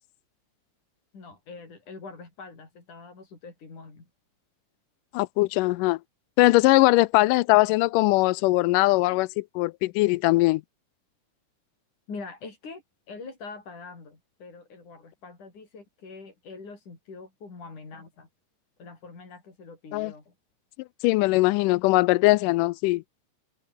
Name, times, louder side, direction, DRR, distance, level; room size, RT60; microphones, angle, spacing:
voice 1, 1.1-4.1 12.1-12.8 13.1-18.3 18.8-20.3, left 4 dB, 70° left, 7.8 m, -44 dB
voice 2, 5.1-6.0 6.4-10.6 19.9-20.1 21.0-23.0, left 20 dB, 90° left, 2.2 m, -21 dB
open air
omnidirectional pair, 3.7 m